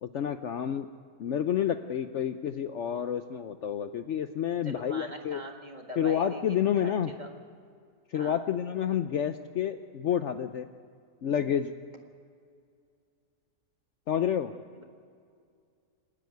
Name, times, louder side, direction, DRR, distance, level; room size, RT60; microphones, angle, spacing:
voice 1, 0.0-0.9 1.2-5.4 6.0-7.1 8.1-10.7 11.2-11.7 14.1-14.5, left 9 dB, 60° left, 9 dB, 0.9 m, -29 dB
voice 2, 4.6-7.3 8.1-8.4 14.8-14.9, right 1 dB, 30° right, 3 dB, 1.8 m, -43 dB
28.0 x 10.0 x 9.3 m, 2.3 s
omnidirectional pair, 1.6 m